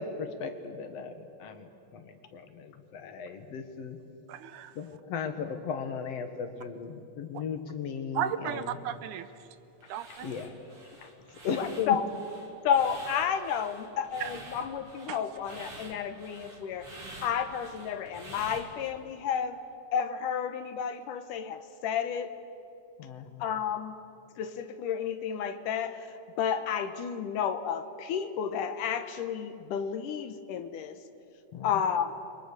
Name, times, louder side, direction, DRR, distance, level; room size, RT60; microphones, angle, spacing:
voice 1, 0.0-4.0 4.7-8.7 10.2-10.5 11.0-12.0 23.0-23.4 31.5-31.7, left 6 dB, 55° left, 7 dB, 2.4 m, -37 dB
voice 2, 4.3-4.8 8.1-9.3 9.9-10.3 14.2-14.3 15.1-15.2, right 10 dB, 75° right, 12 dB, 2.2 m, -34 dB
sound 1, 9.8-18.9, right 2 dB, 40° right, 4.4 m, -48 dB
voice 3, 11.5-12.0 12.6-16.9 17.2-19.6 19.9-22.4 23.4-23.9 24.4-26.1 26.4-31.0 31.6-32.1, left 8 dB, 80° left, 9 dB, 2.7 m, -31 dB
29.0 x 23.0 x 6.7 m, 2.7 s
omnidirectional pair, 3.7 m